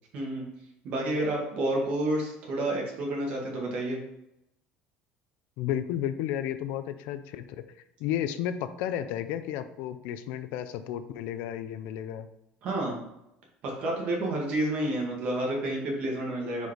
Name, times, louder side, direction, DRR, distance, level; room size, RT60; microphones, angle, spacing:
voice 1, 0.1-0.4 0.8-4.0 12.6-13.0 13.6-16.7, right 1 dB, 45° right, -1 dB, 1.7 m, -30 dB
voice 2, 5.6-7.6 8.0-12.3, left 10 dB, 65° left, 11 dB, 0.4 m, -32 dB
4.8 x 4.0 x 5.0 m, 0.82 s
cardioid pair, 165°, 3 cm